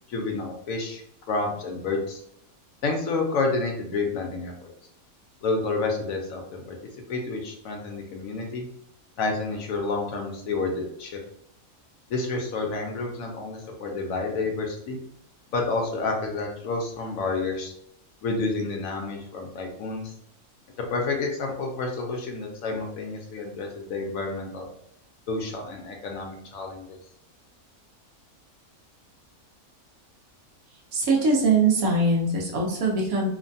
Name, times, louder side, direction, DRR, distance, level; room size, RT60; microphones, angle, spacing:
voice 1, 0.1-1.0 1.3-2.2 2.8-4.7 5.4-6.8 7.1-8.7 9.2-11.2 12.1-15.0 15.5-17.7 18.2-20.1 20.9-24.7 25.3-27.0, left 3 dB, 70° left, 1 dB, 1.0 m, -29 dB
voice 2, 30.9-33.3, right 3 dB, 70° right, -2 dB, 1.1 m, -22 dB
3.0 x 2.1 x 2.6 m, 0.72 s
omnidirectional pair, 1.5 m